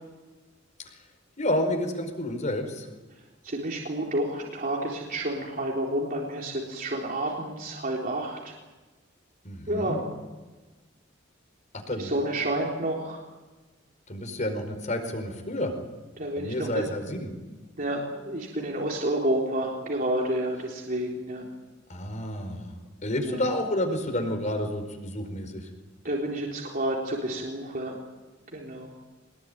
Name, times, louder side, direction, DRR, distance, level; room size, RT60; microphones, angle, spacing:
voice 1, 1.4-2.9 9.4-10.0 11.9-12.1 14.1-15.7 16.3-17.3 21.9-22.7 23.0-25.7, left 1 dB, 40° left, 6 dB, 4.9 m, -30 dB
voice 2, 3.4-8.4 9.7-10.0 12.0-13.2 16.2-16.8 17.8-21.5 23.2-23.4 26.0-28.0 28.5-28.9, right 1 dB, 45° right, -2 dB, 3.9 m, -30 dB
24.0 x 21.0 x 9.3 m, 1.2 s
head